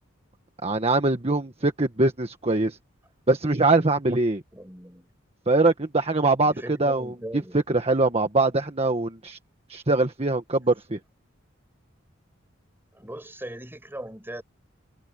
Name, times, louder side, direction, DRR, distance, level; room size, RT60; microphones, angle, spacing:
voice 1, 0.6-2.8 3.3-4.4 5.5-9.4 9.7-11.0, right 2 dB, 30° right, 1.5 m, -23 dB
voice 2, 4.5-5.1 6.4-7.6 12.9-14.4, right 1 dB, 10° right, 5.8 m, -39 dB
head